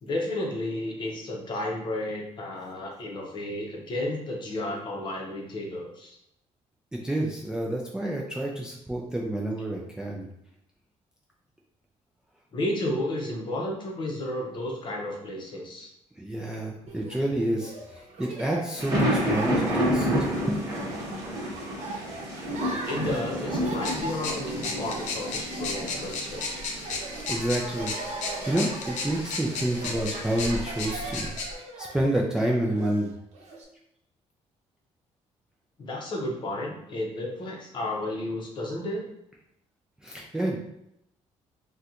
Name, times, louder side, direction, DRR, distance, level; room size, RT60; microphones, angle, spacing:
voice 1, 0.0-6.2 12.5-15.9 22.8-26.5 35.8-39.1, left 1 dB, 40° left, -1 dB, 0.7 m, -32 dB
voice 2, 6.9-10.3 16.2-20.6 27.0-33.1 40.0-40.6, right 1 dB, 5° right, -2 dB, 0.3 m, -29 dB
Laughter, 16.9-33.6, right 3 dB, 70° right, 0.7 m, -40 dB
sound 1, 18.8-31.3, equal, 30° right, 0.9 m, -31 dB
sound 2, 23.8-31.5, left 3 dB, 85° left, 0.6 m, -35 dB
4.2 x 2.2 x 2.5 m, 0.79 s
cardioid pair, 155°, 12 cm